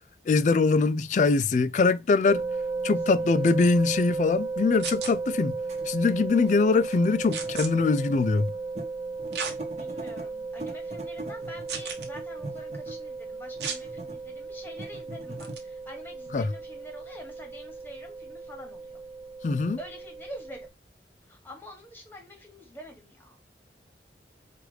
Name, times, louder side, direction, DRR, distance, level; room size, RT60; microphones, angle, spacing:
voice 1, 0.3-2.4 2.8-5.5 5.9-8.5 16.3-16.5 19.4-19.8, left 4 dB, 45° left, 0.3 m, -23 dB
sound 1, 2.3-20.7, right 4 dB, 10° right, 1.0 m, -35 dB
voice 2, 2.8-3.5 9.7-19.0 19.8-20.7 21.3-23.4, left 1 dB, 10° left, 1.3 m, -46 dB
sound 2, 2.8-2.9 3.9-4.0 5.3-5.4 5.6-8.4 8.7-8.9 9.2-10.3 10.6-13.1 13.5-14.3 14.6-15.5, right 1 dB, 40° right, 1.1 m, -42 dB
sound 3, 4.8-5.1 7.3-7.7 9.3-9.6 10.2-10.3 11.7-12.1 13.6-13.8 15.4-15.6, right 6 dB, 75° right, 0.9 m, -33 dB
4.7 x 2.5 x 3.1 m
head